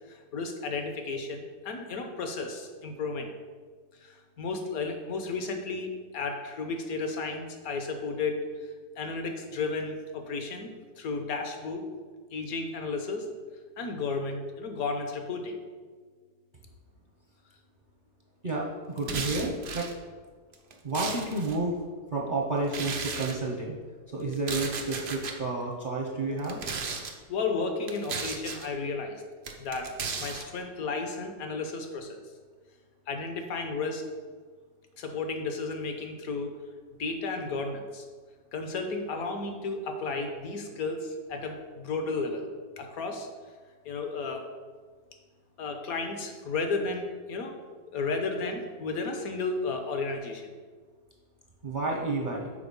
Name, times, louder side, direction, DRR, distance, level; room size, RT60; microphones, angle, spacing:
voice 1, 0.1-3.3 4.0-5.9 6.1-8.4 9.0-10.7 11.0-11.8 12.3-13.3 13.8-15.6 27.3-29.2 29.6-29.9 30.2-32.2 33.1-34.0 35.0-36.5 37.0-38.0 38.5-42.5 42.8-43.3 43.8-44.5 45.6-47.6 47.9-50.4, left 3 dB, 60° left, 4 dB, 1.2 m, -33 dB
voice 2, 18.9-19.9 20.8-21.7 22.1-23.8 24.1-26.6 51.6-52.5, right 2 dB, 40° right, -1 dB, 0.7 m, -30 dB
sound 1, 19.0-19.9 20.5-21.6 22.7-23.4 24.3-25.4 26.4-27.1 27.9-28.7 29.4-30.4, right 5 dB, 80° right, 0.5 m, -35 dB
6.9 x 4.5 x 5.3 m, 1.5 s
omnidirectional pair, 1.9 m